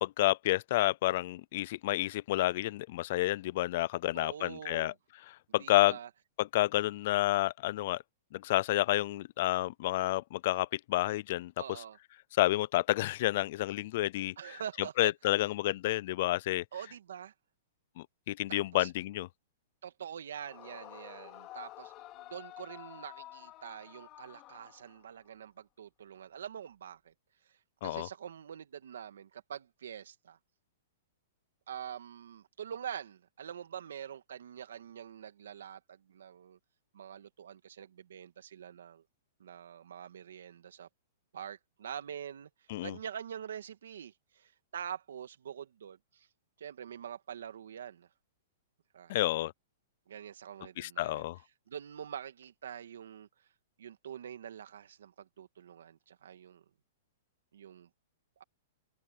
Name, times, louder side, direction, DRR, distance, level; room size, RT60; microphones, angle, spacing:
voice 1, 0.0-4.9 5.5-6.0 6.4-8.0 8.3-11.5 12.4-14.4 15.0-16.6 18.0-19.3 27.8-28.1 42.7-43.0 49.1-49.5 50.8-51.4, left 16 dB, 40° left, 0.4 m, -30 dB
voice 2, 4.1-5.0 5.6-6.1 11.6-12.0 14.4-15.1 16.7-17.3 18.5-18.9 19.8-27.1 27.5-30.4 31.7-36.6 36.9-39.0 39.4-40.9 41.3-42.5 42.8-46.3 46.6-48.1 48.9-49.1 50.1-51.2 51.7-53.3 53.8-56.6 57.5-57.9 58.4-58.5, right 9 dB, 85° right, 2.3 m, -45 dB
Yell / Screaming, 20.4-25.3, left 15 dB, 20° left, 2.2 m, -50 dB
hypercardioid pair, 180°, 0 cm